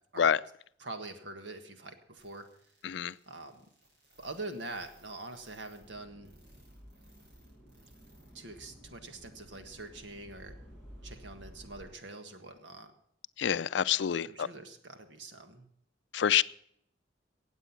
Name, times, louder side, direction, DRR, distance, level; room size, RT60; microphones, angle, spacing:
voice 1, 0.8-2.5 3.3-3.7 4.2-6.3 8.3-10.5 11.0-12.9 14.2-15.7, right 2 dB, 80° right, 6 dB, 1.7 m, -44 dB
sound 1, 2.2-8.3 8.6-8.7 9.2-9.3, right 1 dB, 60° right, 6.7 m, -63 dB
voice 2, 2.8-3.1 13.4-14.5 16.1-16.4, left 8 dB, 70° left, 17 dB, 0.4 m, -27 dB
sound 2, 5.8-11.9, equal, 5° right, 7.5 m, -53 dB
17.5 x 8.1 x 5.8 m, 0.69 s
head